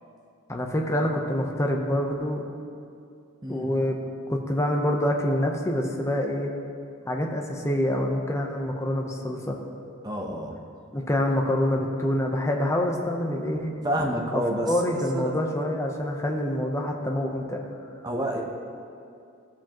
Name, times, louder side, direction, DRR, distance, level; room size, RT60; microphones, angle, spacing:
voice 1, 0.5-2.5 3.5-4.0 4.3-6.5 7.1-9.6 10.9-13.7 14.3-17.7, left 1 dB, 15° left, 1 dB, 0.8 m, -26 dB
voice 2, 3.4-3.7 10.0-10.6 13.8-15.3 18.0-18.4, equal, 20° right, 1 dB, 0.9 m, -29 dB
16.0 x 7.3 x 3.0 m, 2.4 s
head